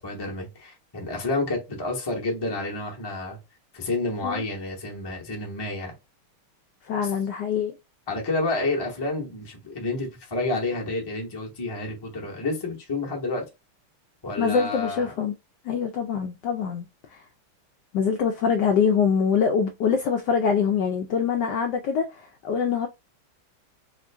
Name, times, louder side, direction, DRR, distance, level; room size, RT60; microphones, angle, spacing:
voice 1, 0.0-3.4 3.7-5.9 7.0-7.1 8.1-13.4 14.2-15.1, left 2 dB, 20° left, 0.6 m, -29 dB
voice 2, 6.8-7.7 14.4-15.3 15.6-16.9 17.1-17.2 17.9-22.9, left 6 dB, 80° left, 0.9 m, -24 dB
3.7 x 2.5 x 3.3 m
omnidirectional pair, 2.4 m